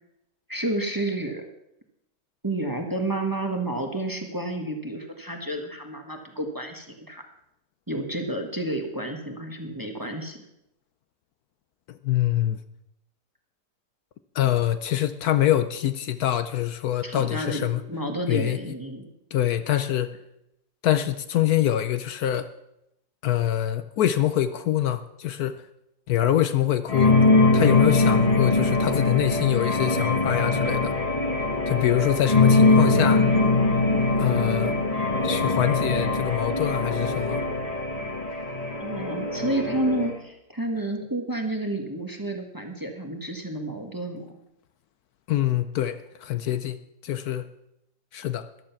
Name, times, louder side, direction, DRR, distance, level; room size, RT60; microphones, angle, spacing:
voice 1, 0.5-1.5 2.4-7.2 7.9-10.4 17.0-19.1 38.8-44.3, right 1 dB, 15° right, 3 dB, 1.3 m, -30 dB
voice 2, 11.9-12.6 14.3-17.8 18.3-18.7 19.3-20.1 20.8-22.5 23.2-25.6 26.1-27.2 27.5-30.9 31.7-33.2 34.2-34.8 35.2-37.4 45.3-47.4 48.1-48.5, left 12 dB, 70° left, 11 dB, 1.1 m, -25 dB
sound 1, 26.9-40.1, left 2 dB, 25° left, 1.4 m, -22 dB
14.0 x 11.0 x 5.9 m, 0.83 s
omnidirectional pair, 1.7 m